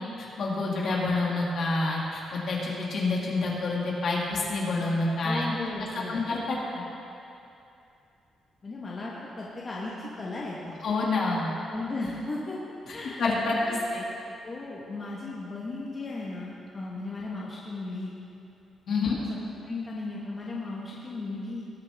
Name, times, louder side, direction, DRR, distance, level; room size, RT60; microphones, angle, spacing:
voice 1, 0.0-5.5 6.0-6.8 10.8-11.5 13.2-14.0 18.9-19.2, left 3 dB, 55° left, -4 dB, 2.2 m, -28 dB
voice 2, 5.2-6.2 8.6-10.8 11.7-12.6 12.9-13.8 14.4-18.1 19.1-19.3 19.6-21.6, left 2 dB, 30° left, -5 dB, 1.2 m, -36 dB
19.0 x 7.4 x 3.5 m, 2.7 s
cardioid pair, 150°, 0 cm